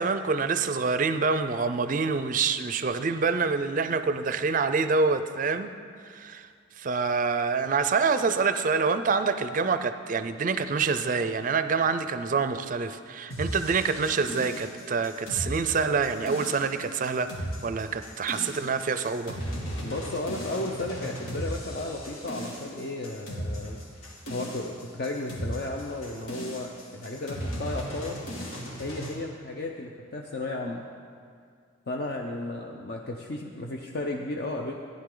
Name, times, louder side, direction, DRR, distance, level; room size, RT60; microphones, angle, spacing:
voice 1, 0.0-5.7 6.0-6.5 6.8-17.3 17.6-19.4, right 4 dB, 40° right, 11 dB, 0.4 m, -26 dB
sound 1, 13.3-29.1, equal, 90° left, 2.3 m, -37 dB
voice 2, 19.8-23.8 24.3-28.2 28.8-30.8 31.9-34.7, left 2 dB, 50° left, 1 dB, 0.6 m, -34 dB
15.0 x 10.5 x 3.8 m, 2.2 s
head